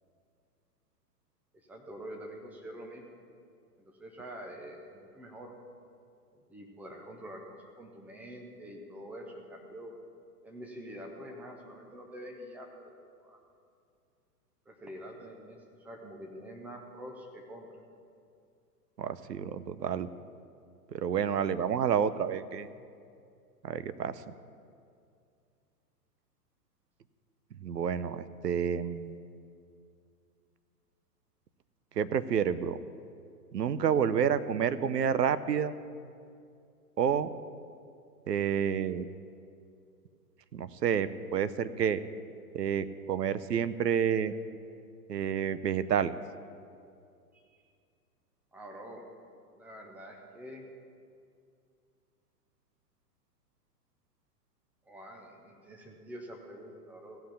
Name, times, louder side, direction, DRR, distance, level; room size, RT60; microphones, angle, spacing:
voice 1, 1.5-3.2 3.8-5.5 6.3-9.9 10.4-13.0 13.2-13.4 14.7-17.8 47.3-47.6 48.5-49.0 49.6-50.7 54.9-57.2, equal, 5° right, 1 dB, 0.4 m, -46 dB
voice 2, 19.0-20.1 20.9-22.7 23.6-24.2 27.6-29.2 32.0-32.8 33.5-35.7 37.0-37.3 38.3-39.1 40.5-42.0 42.5-44.3 45.1-46.1, right 8 dB, 85° right, 15 dB, 0.7 m, -29 dB
15.5 x 5.9 x 8.4 m, 2.4 s
hypercardioid pair, 115°, 48 cm